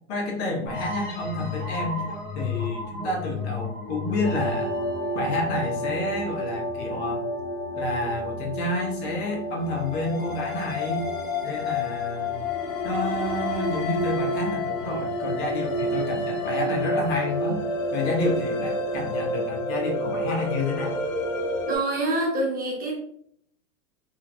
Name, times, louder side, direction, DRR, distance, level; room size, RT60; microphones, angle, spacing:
voice 1, 0.1-2.1 2.3-4.8 5.1-7.2 7.7-11.0 11.4-12.4 12.8-17.6 17.9-21.0, left 2 dB, 50° left, 0 dB, 1.1 m, -29 dB
sound 1, 0.7-6.1, left 5 dB, 25° left, 1.1 m, -33 dB
sound 2, 4.2-21.8, left 1 dB, 85° left, 0.8 m, -29 dB
voice 2, 21.7-23.0, right 2 dB, 20° right, -2 dB, 0.8 m, -26 dB
3.1 x 2.6 x 2.3 m, 0.65 s
hypercardioid pair, 110°, 40 cm